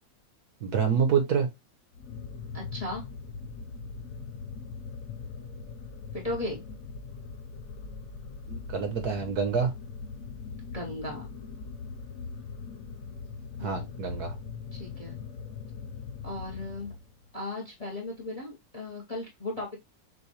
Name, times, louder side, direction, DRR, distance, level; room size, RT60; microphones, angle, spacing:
voice 1, 0.6-1.5 8.5-9.7 13.6-14.3, right 6 dB, 60° right, 1.3 m, -27 dB
sound 1, 1.9-17.3, left 5 dB, 60° left, 1.0 m, -41 dB
voice 2, 2.5-3.0 6.1-6.6 10.7-11.3 13.6-14.1 14.7-15.2 16.2-16.9 17.3-19.8, left 2 dB, 25° left, 0.9 m, -36 dB
6.4 x 2.6 x 3.0 m
omnidirectional pair, 2.0 m